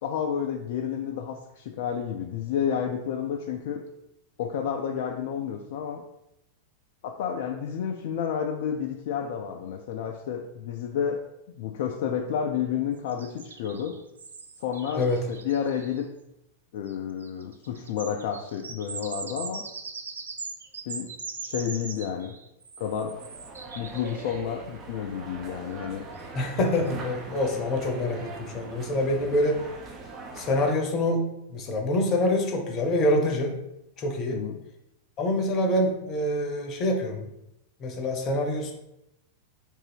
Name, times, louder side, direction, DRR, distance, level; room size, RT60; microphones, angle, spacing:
voice 1, 0.0-3.8 4.4-6.0 7.0-11.2 11.6-13.9 14.6-16.1 16.7-19.6 20.9-21.1 21.4-22.3 22.8-23.2 23.7-26.0 34.3-34.6, left 8 dB, 55° left, 2 dB, 0.3 m, -30 dB
sound 1, 13.1-16.0 16.9-17.0 17.2-24.4 26.2-26.3 26.7-26.9, right 4 dB, 70° right, 0.3 m, -41 dB
sound 2, 22.8-30.8, right 3 dB, 35° right, 0.6 m, -42 dB
voice 2, 26.3-29.6 30.4-33.6 34.0-34.4 35.2-37.3 37.8-38.7, left 1 dB, 35° left, 2 dB, 0.7 m, -26 dB
3.7 x 2.6 x 3.4 m, 0.85 s
figure-of-eight pair, 90°, 0 cm